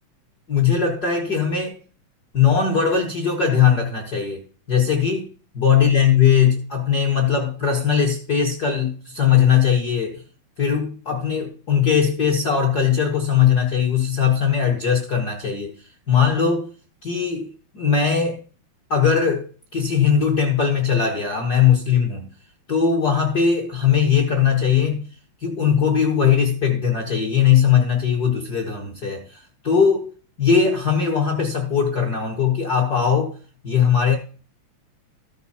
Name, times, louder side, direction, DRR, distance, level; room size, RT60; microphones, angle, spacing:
voice 1, 0.5-1.8 2.3-10.2 10.6-15.7 16.1-16.7 17.0-18.4 18.9-19.5 19.7-22.3 22.7-25.1 25.4-30.1 30.4-33.3 33.6-34.1, left 7 dB, 65° left, 0.9 m, -19 dB
13.5 x 6.0 x 4.2 m
omnidirectional pair, 3.3 m